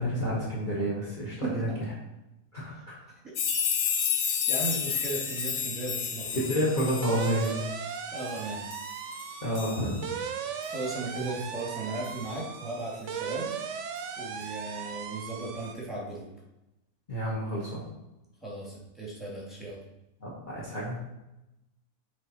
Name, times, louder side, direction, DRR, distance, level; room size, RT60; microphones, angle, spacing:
voice 1, 0.0-1.7 2.5-3.0 6.4-7.6 9.4-10.0 11.2-11.3 17.1-17.8 20.2-21.0, equal, 35° left, -5 dB, 1.4 m, -30 dB
sound 1, 3.4-10.3 10.6-10.7 12.0-12.1, left 7 dB, 60° left, 1.0 m, -31 dB
voice 2, 4.2-6.4 8.1-8.7 10.6-13.5 14.2-16.3 18.4-19.8, right 2 dB, ahead, -5 dB, 2.1 m, -36 dB
sound 2, 4.9-5.5 5.9-15.7, right 7 dB, 65° right, 0.8 m, -38 dB
6.9 x 4.5 x 4.2 m, 0.95 s
omnidirectional pair, 1.6 m